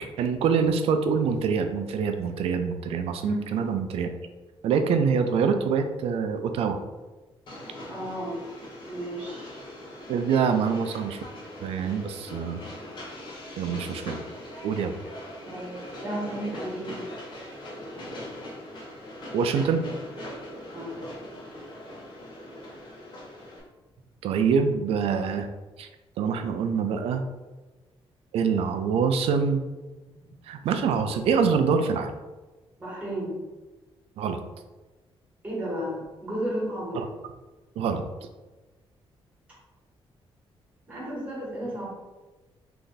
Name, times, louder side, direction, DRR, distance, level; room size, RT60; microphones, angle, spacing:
voice 1, 0.2-4.1 4.6-6.8 10.1-11.2 11.6-12.6 13.6-14.2 14.6-14.9 19.3-19.8 24.2-25.5 25.8-25.9 26.2-27.2 28.3-29.6 30.5-32.1 34.2-34.4 36.9-37.1 37.8-38.0, right 6 dB, 75° right, 7 dB, 0.4 m, -25 dB
Train, 7.5-23.6, left 1 dB, 50° left, 0.9 m, -41 dB
voice 2, 7.9-8.4 8.9-9.6 15.4-17.1 20.7-21.0 30.1-30.2 32.8-33.4 35.4-37.0 40.9-41.9, right 1 dB, 15° right, -7 dB, 1.4 m, -33 dB
3.3 x 2.6 x 3.9 m, 1.2 s
cardioid pair, 175°, 10 cm